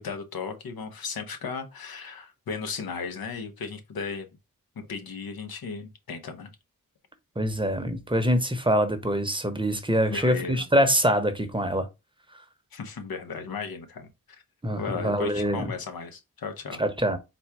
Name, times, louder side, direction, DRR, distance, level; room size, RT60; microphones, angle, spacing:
voice 1, 0.0-4.3 4.9-6.5 10.1-10.7 12.7-14.4 14.8-16.8, left 5 dB, 80° left, 0.9 m, -35 dB
voice 2, 7.4-11.9 14.6-15.7 16.8-17.2, equal, 15° right, 0.8 m, -24 dB
4.3 x 2.2 x 4.6 m
cardioid pair, 55°, 35 cm